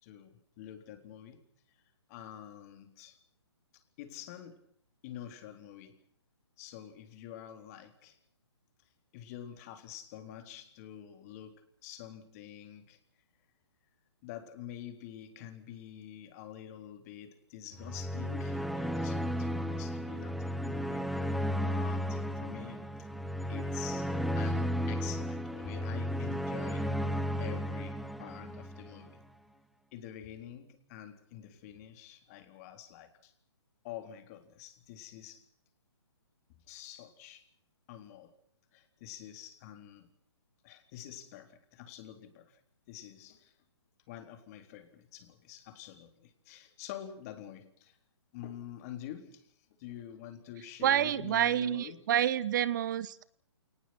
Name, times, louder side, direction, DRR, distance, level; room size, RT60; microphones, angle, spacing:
voice 1, 0.0-1.8 2.1-3.2 3.7-4.6 5.0-6.0 6.6-8.2 9.1-13.0 14.2-22.8 23.5-26.9 27.4-29.2 29.9-33.3 33.8-35.4 36.7-37.5 37.9-38.3 38.7-40.1 40.6-42.6 42.9-43.5 44.1-48.0 48.3-52.1, left 11 dB, 35° left, 7 dB, 3.9 m, -47 dB
sound 1, 17.8-29.1, equal, ahead, 1.2 m, -34 dB
voice 2, 50.8-53.3, right 11 dB, 45° right, 18 dB, 1.0 m, -28 dB
28.5 x 19.5 x 6.2 m, 0.66 s
hypercardioid pair, 145°, 15 cm